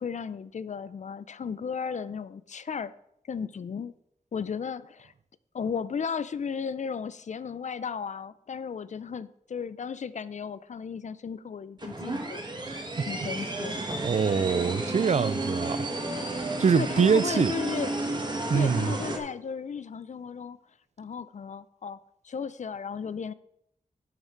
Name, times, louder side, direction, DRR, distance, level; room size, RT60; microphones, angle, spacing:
voice 1, 0.0-2.9 3.3-3.9 4.3-5.1 5.5-12.4 13.1-13.8 16.7-18.0 18.5-20.6 21.0-22.0 22.2-23.3, left 6 dB, 60° left, 0.4 m, -35 dB
sound 1, 11.8-19.2, right 2 dB, 30° right, 1.5 m, -32 dB
voice 2, 12.6-13.1 14.0-15.9 16.6-17.5 18.5-18.9, right 6 dB, 55° right, 0.4 m, -24 dB
11.0 x 5.8 x 4.4 m
wide cardioid pair, 75°, 14 cm